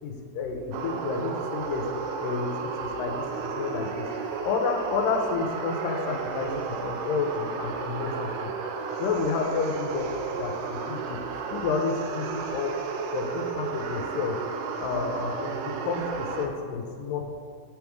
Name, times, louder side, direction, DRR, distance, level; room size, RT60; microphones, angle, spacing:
voice 1, 0.0-1.8 2.2-4.1 4.4-8.5 9.0-10.1 10.4-12.7 13.1-14.4 14.8-17.3, left 5 dB, 85° left, 3 dB, 2.3 m, -30 dB
sound 1, 0.7-16.5, right 5 dB, 80° right, 2.0 m, -33 dB
9.1 x 3.6 x 4.6 m, 2.2 s
omnidirectional pair, 3.9 m